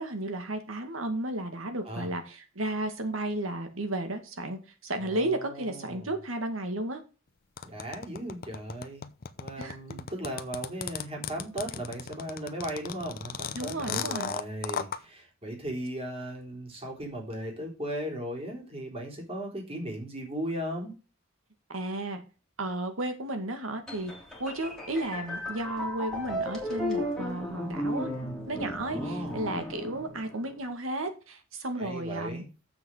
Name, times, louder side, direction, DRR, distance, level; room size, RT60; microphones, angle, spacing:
voice 1, 0.0-7.0 9.6-10.0 13.5-14.3 21.7-22.2 22.6-24.1 24.4-28.1 28.5-32.4, right 1 dB, 80° right, 2.1 m, -33 dB
voice 2, 5.0-6.1 7.6-9.1 9.4-20.9 28.9-29.4 31.8-32.5, right 1 dB, 30° right, 3.8 m, -37 dB
sound 1, 7.6-15.0, left 7 dB, 45° left, 0.7 m, -35 dB
sound 2, 23.9-30.6, left 1 dB, 5° left, 3.0 m, -35 dB
7.3 x 6.1 x 7.7 m
head